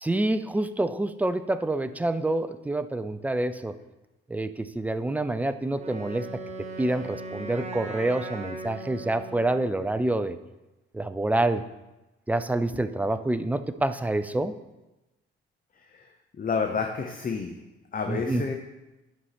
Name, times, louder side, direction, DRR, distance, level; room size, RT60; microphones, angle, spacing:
voice 1, 0.0-3.8 4.3-6.3 6.8-10.4 10.9-11.6 12.3-14.5 18.1-18.4, right 2 dB, 5° right, 12 dB, 0.4 m, -27 dB
Wind instrument woodwind instrument, 5.8-9.8, right 3 dB, 20° right, 1.4 m, -38 dB
voice 2, 15.8-16.1 16.4-17.6 17.9-18.5, left 5 dB, 30° left, 3 dB, 0.7 m, -30 dB
11.0 x 5.5 x 3.0 m, 1.0 s
figure-of-eight pair, 45°, 30 cm